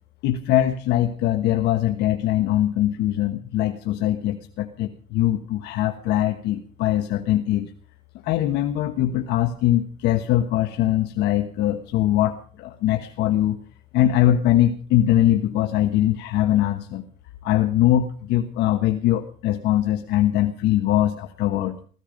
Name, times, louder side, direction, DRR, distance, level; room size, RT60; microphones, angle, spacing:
voice 1, 0.2-7.7 8.2-13.6 13.9-17.0 17.4-21.8, left 13 dB, 85° left, 7 dB, 1.3 m, -22 dB
17.0 x 15.0 x 5.2 m, 0.44 s
cardioid pair, 110°, 17 cm